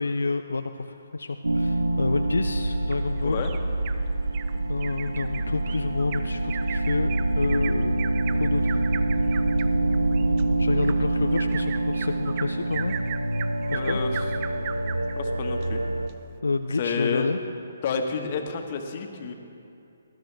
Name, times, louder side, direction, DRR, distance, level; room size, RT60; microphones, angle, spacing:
voice 1, 0.0-3.4 4.6-8.8 10.6-12.9 13.7-14.0 16.4-17.4, left 3 dB, 75° left, 7 dB, 0.5 m, -29 dB
sound 1, 1.4-16.1, right 2 dB, 90° right, 0.6 m, -26 dB
Bird vocalization bird call bird song, 2.9-4.0 4.3-4.5 4.8-15.2 15.6-15.7 16.1-16.2, right 10 dB, 35° right, 0.4 m, -38 dB
voice 2, 13.7-14.2 15.2-15.8 16.8-17.3 17.8-19.3, left 6 dB, 40° left, 4 dB, 1.5 m, -30 dB
19.5 x 13.0 x 3.5 m, 2.6 s
figure-of-eight pair, 140°, 0 cm